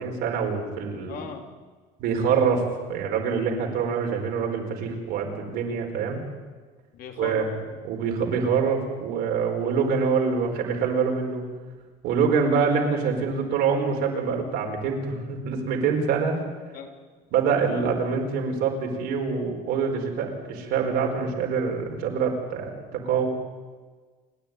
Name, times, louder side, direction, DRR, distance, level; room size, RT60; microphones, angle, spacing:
voice 1, 0.0-1.2 2.0-6.2 7.2-7.6 7.8-11.4 12.0-16.4 17.3-23.3, right 5 dB, 70° right, 1 dB, 4.7 m, -25 dB
voice 2, 1.1-1.5 6.9-7.4 16.7-16.9, left 6 dB, 60° left, 4 dB, 3.0 m, -38 dB
28.5 x 10.0 x 9.5 m, 1.4 s
cardioid pair, 125°, 17 cm